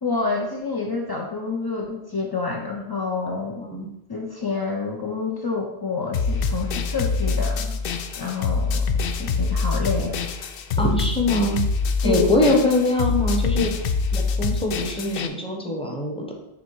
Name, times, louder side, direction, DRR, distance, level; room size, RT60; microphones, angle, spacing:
voice 1, 0.0-3.6 4.1-7.8 8.2-10.5 12.0-12.6, left 4 dB, 40° left, 0 dB, 0.3 m, -28 dB
sound 1, 6.1-15.3, left 4 dB, 65° left, 0.7 m, -25 dB
voice 2, 10.8-11.6 12.0-16.2, left 1 dB, 5° left, 1 dB, 0.8 m, -23 dB
6.1 x 3.5 x 4.6 m, 0.92 s
omnidirectional pair, 1.2 m